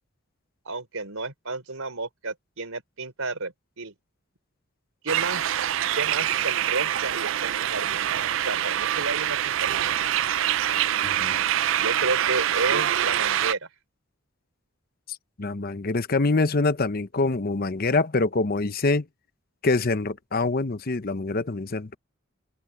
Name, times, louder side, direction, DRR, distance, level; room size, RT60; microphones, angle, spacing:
voice 1, 0.6-3.9 5.0-5.6 5.9-8.1 8.4-9.8 11.8-13.7, right 3 dB, 90° right, 4.3 m, -32 dB
sound 1, 5.1-13.5, right 11 dB, 65° right, 0.4 m, -25 dB
voice 2, 11.0-11.4 15.4-19.0 19.6-22.0, left 3 dB, 45° left, 0.8 m, -25 dB
open air
head